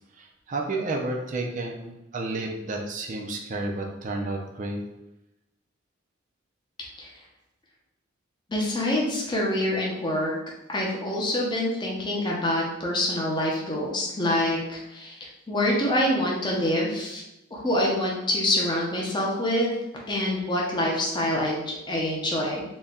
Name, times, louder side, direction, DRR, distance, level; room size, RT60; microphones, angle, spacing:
voice 1, 0.2-4.8, right 2 dB, 40° right, 1 dB, 0.5 m, -31 dB
voice 2, 8.5-10.3 10.7-15.2 15.5-17.2 17.5-19.8 20.1-22.8, left 1 dB, 20° left, -3 dB, 0.6 m, -26 dB
4.1 x 2.2 x 3.6 m, 0.89 s
head